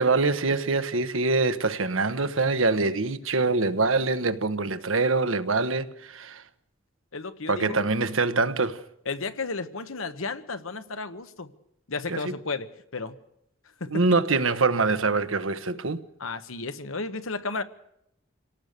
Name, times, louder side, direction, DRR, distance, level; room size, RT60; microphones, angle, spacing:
voice 1, 0.0-6.4 7.5-8.8 12.1-12.3 13.9-16.0, right 3 dB, 75° right, 1.2 m, -24 dB
voice 2, 7.1-7.8 9.0-11.5 11.9-13.2 13.8-14.0 16.2-17.6, left 3 dB, 80° left, 1.3 m, -33 dB
27.0 x 18.0 x 6.8 m
head